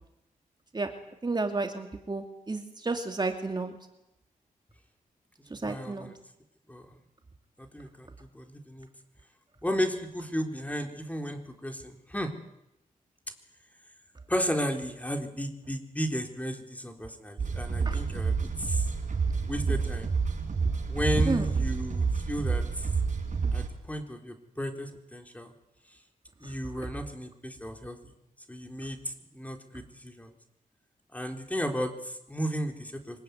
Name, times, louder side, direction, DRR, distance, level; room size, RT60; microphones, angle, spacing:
voice 1, 1.2-3.8 5.5-6.1 17.8-18.3 19.3-19.5 20.6-20.7 21.1-21.5 26.4-26.6, right 3 dB, 30° right, 5 dB, 2.7 m, -31 dB
voice 2, 5.5-6.1 6.7-6.9 7.6-8.9 9.6-12.3 14.3-18.9 19.4-20.1 20.9-22.9 23.5-25.5 26.4-28.0 28.5-30.3 31.1-33.2, equal, 10° left, 5 dB, 3.7 m, -34 dB
sound 1, 17.4-23.7, right 5 dB, 55° right, 6.5 m, -29 dB
25.0 x 20.0 x 9.5 m, 0.84 s
cardioid pair, 80°, 15 cm